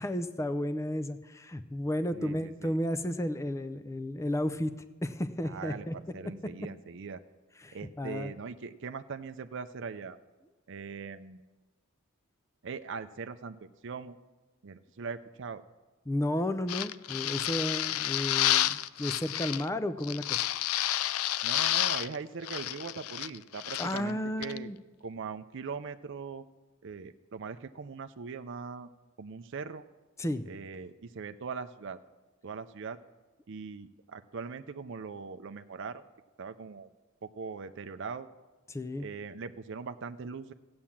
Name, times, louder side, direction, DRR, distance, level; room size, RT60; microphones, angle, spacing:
voice 1, 0.0-4.7 5.0-5.9 7.6-8.3 16.1-20.4 23.8-24.8 30.2-30.5 38.7-39.1, left 1 dB, 15° left, 11 dB, 0.5 m, -33 dB
voice 2, 2.1-2.7 5.4-5.9 6.1-7.2 7.7-10.2 10.7-11.4 12.6-13.6 13.8-14.2 14.6-15.6 21.4-24.7 25.0-26.5 26.8-28.9 29.2-29.8 30.5-32.0 32.4-33.0 33.5-36.0 36.4-36.9 37.2-38.3 39.0-40.5, right 5 dB, 60° right, 9 dB, 0.5 m, -40 dB
sound 1, 16.7-19.7 20.0-22.2 22.4-24.0 24.4-24.6, left 13 dB, 90° left, 0.4 m, -30 dB
15.0 x 8.7 x 7.2 m, 1.2 s
head